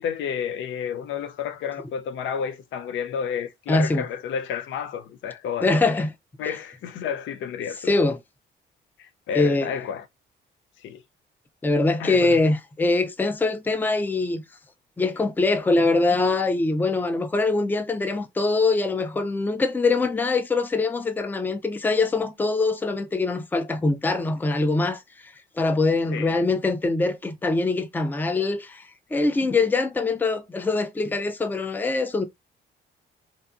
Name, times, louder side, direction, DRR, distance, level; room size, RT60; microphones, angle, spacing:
voice 1, 0.0-5.8 6.4-7.9 9.0-10.0 10.8-11.0 12.0-12.4 26.1-26.4, left 7 dB, 75° left, 0.5 m, -31 dB
voice 2, 3.7-4.1 5.6-6.1 7.9-8.2 9.3-9.7 11.6-14.4 15.0-32.3, left 3 dB, 10° left, 0.4 m, -23 dB
2.5 x 2.5 x 2.3 m
cardioid pair, 90°, 20 cm